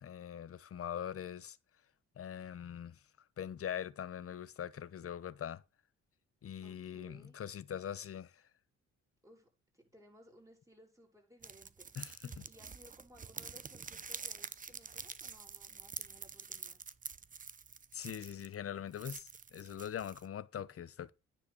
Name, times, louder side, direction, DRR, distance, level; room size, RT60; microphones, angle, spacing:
voice 1, 0.0-1.6 2.2-3.0 3.4-5.6 6.4-8.4 12.0-12.3 17.9-21.1, left 9 dB, 50° left, 1.0 m, -42 dB
voice 2, 6.6-7.4 9.2-9.5 9.7-16.8, equal, 10° right, 6.6 m, -61 dB
sound 1, 11.4-18.5 18.9-20.3, right 5 dB, 25° right, 0.8 m, -47 dB
9.8 x 4.8 x 7.0 m
cardioid pair, 90°, 30 cm